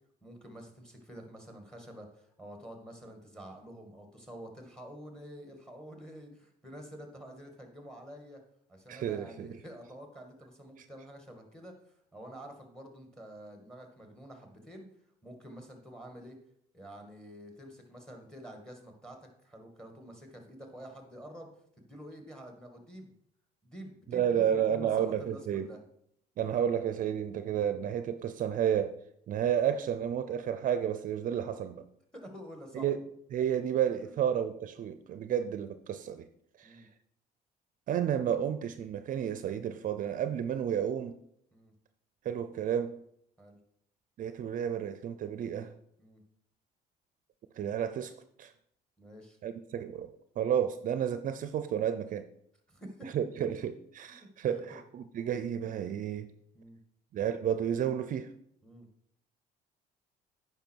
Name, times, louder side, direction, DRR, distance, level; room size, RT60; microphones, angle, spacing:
voice 1, 0.2-8.4 8.7-14.9 15.2-16.4 16.7-21.5 21.8-23.1 23.6-25.8 32.1-32.9 34.1-34.2 36.6-36.9 41.5-41.7 43.4-43.6 46.0-46.2 49.0-49.4 52.7-53.1 53.4-53.5 54.1-54.8 56.5-56.8 58.6-58.9, equal, 5° left, 1.9 m, -48 dB
voice 2, 8.9-9.6 10.8-10.9 24.1-25.7 26.4-28.9 29.3-31.8 32.7-33.0 33.3-36.3 36.6-36.9 37.9-41.2 42.2-43.0 44.2-45.7 47.6-48.5 49.4-52.3 53.1-56.3 57.1-58.3, right 9 dB, 50° right, 0.5 m, -31 dB
9.1 x 5.6 x 4.6 m
cardioid pair, 110°, 17 cm